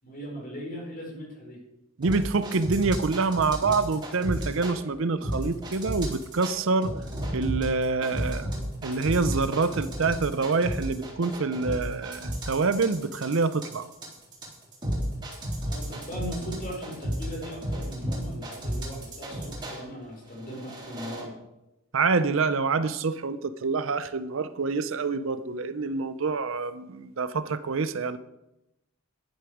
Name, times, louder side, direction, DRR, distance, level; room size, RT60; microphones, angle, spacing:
voice 1, 0.0-1.6 15.6-21.3, equal, 40° left, -2 dB, 5.3 m, -39 dB
sound 1, 2.0-4.7 5.2-6.5 6.8-19.8 20.4-21.2, equal, 20° right, 3.6 m, -33 dB
voice 2, 2.0-6.9 7.3-8.6 8.8-13.9 21.9-28.2, right 4 dB, 60° right, 13 dB, 0.6 m, -26 dB
11.5 x 11.0 x 5.0 m, 0.92 s
head